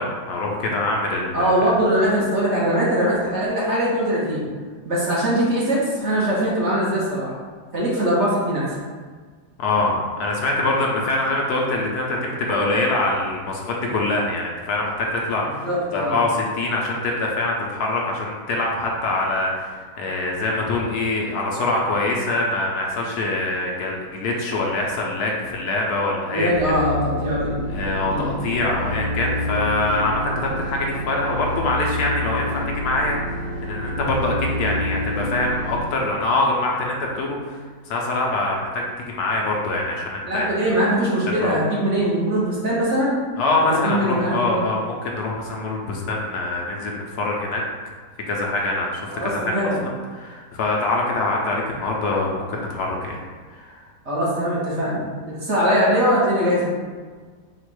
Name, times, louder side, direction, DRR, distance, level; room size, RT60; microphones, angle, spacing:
voice 1, 0.0-1.5 9.6-26.5 27.7-37.6 37.9-40.5 41.4-41.6 43.4-47.6 48.3-53.2 53.5-53.8, left 2 dB, 75° left, -1 dB, 1.2 m, -24 dB
voice 2, 1.3-4.5 4.8-7.3 7.7-8.7 15.6-16.1 26.3-27.6 28.1-28.3 40.3-43.2 43.6-44.7 49.1-49.8 54.0-56.6, equal, 50° right, -7 dB, 1.2 m, -21 dB
sound 1, 26.5-35.8, left 1 dB, 70° right, 1.4 m, -28 dB
4.3 x 2.4 x 4.7 m, 1.5 s
omnidirectional pair, 1.8 m